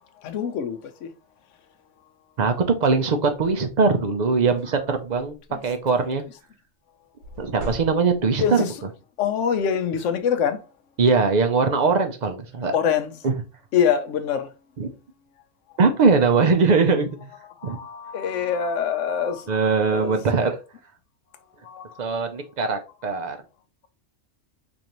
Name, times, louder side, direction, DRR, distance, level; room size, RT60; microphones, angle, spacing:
voice 1, 0.2-1.1 5.5-5.6 8.4-8.7 9.2-10.6 12.7-13.1 13.7-14.5 17.6-19.6 19.9-20.2 21.6-22.0, left 8 dB, 75° left, 0.9 m, -24 dB
voice 2, 2.8-5.4 5.6-6.2 7.4-8.6 11.0-12.8 13.2-13.3 14.8-14.9 15.8-17.1 17.6-17.8 19.5-20.6 22.0-23.4, right 4 dB, 55° right, 0.5 m, -21 dB
sound 1, 4.0-4.2 4.4-5.5 7.2-8.4, right 1 dB, 85° right, 1.5 m, -39 dB
4.8 x 2.6 x 2.8 m
omnidirectional pair, 1.3 m